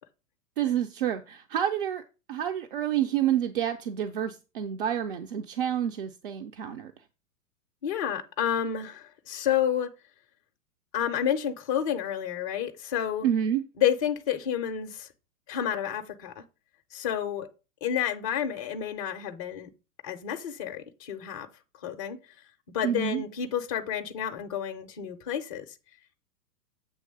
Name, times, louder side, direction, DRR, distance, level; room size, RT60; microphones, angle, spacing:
voice 1, 0.6-2.0 2.3-6.9 13.2-13.6 22.8-23.2, right 10 dB, 35° right, 0.5 m, -28 dB
voice 2, 7.8-9.9 10.9-13.3 13.8-15.1 15.5-16.4 16.9-17.5 17.8-19.7 20.0-21.5 21.8-22.2 22.7-25.8, left 9 dB, 25° left, 0.5 m, -30 dB
7.6 x 3.2 x 6.3 m
figure-of-eight pair, 105°, 47 cm